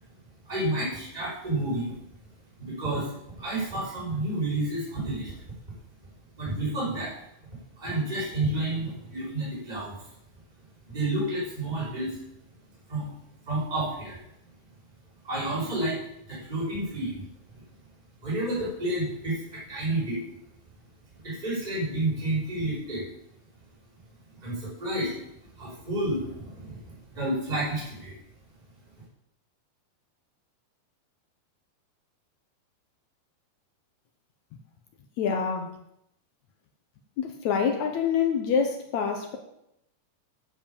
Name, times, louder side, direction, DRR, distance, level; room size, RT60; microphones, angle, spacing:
voice 1, 0.4-1.9 2.6-3.1 3.4-5.3 6.4-7.1 7.8-9.9 10.9-12.2 12.9-13.1 13.5-14.2 15.2-16.0 16.3-17.3 18.2-20.2 21.2-23.1 24.4-25.1 25.6-28.1, right 1 dB, 10° right, -7 dB, 5.1 m, -30 dB
voice 2, 35.2-35.8 37.2-39.4, left 6 dB, 70° left, 5 dB, 1.7 m, -26 dB
9.6 x 7.7 x 7.2 m, 0.78 s
omnidirectional pair, 4.5 m